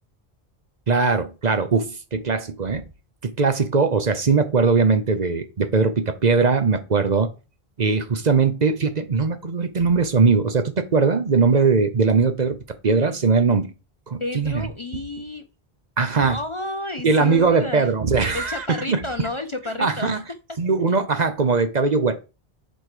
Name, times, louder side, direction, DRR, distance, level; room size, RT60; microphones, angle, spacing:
voice 1, 0.9-2.8 3.2-7.3 7.8-12.6 12.8-13.7 14.1-14.7 16.0-16.4 17.0-19.3 19.8-20.2 20.6-22.3, right 4 dB, 45° right, 0.9 m, -20 dB
voice 2, 14.2-15.4 16.2-17.9 18.3-20.4 20.9-21.0, left 2 dB, 35° left, 0.6 m, -31 dB
7.7 x 4.4 x 4.9 m
omnidirectional pair, 1.0 m